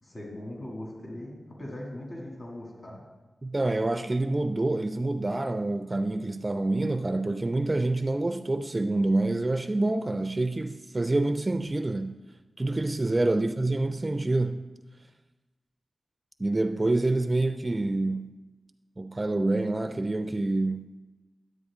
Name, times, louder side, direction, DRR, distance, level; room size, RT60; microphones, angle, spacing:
voice 1, 0.0-3.0 13.0-13.3, left 1 dB, 35° left, 2.2 m, -40 dB
voice 2, 3.4-12.2 12.6-14.7 16.4-18.3 19.0-20.9, right 2 dB, 25° right, 0.4 m, -27 dB
11.0 x 8.0 x 3.6 m
wide cardioid pair, 75°, 0 cm